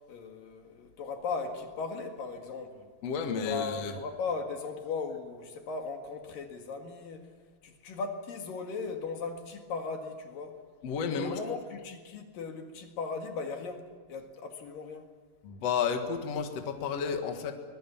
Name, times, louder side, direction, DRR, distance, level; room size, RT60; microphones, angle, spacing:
voice 1, 0.1-2.9 3.4-7.3 7.6-10.6 11.1-15.1, left 4 dB, 65° left, 3.5 m, -37 dB
voice 2, 3.0-3.9 10.8-11.4 15.4-17.5, left 6 dB, 50° left, 2.3 m, -31 dB
24.0 x 21.0 x 7.2 m
omnidirectional pair, 4.4 m